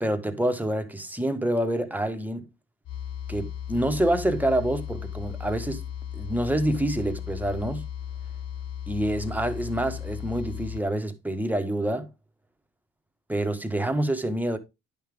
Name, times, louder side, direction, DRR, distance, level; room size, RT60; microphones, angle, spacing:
voice 1, 0.0-2.5 3.3-5.8 6.1-7.8 8.9-12.1 13.3-14.6, right 1 dB, 5° right, 1.4 m, -27 dB
sound 1, 2.8-10.8, left 9 dB, 50° left, 0.6 m, -36 dB
10.5 x 5.8 x 3.5 m
cardioid pair, 85°, 33 cm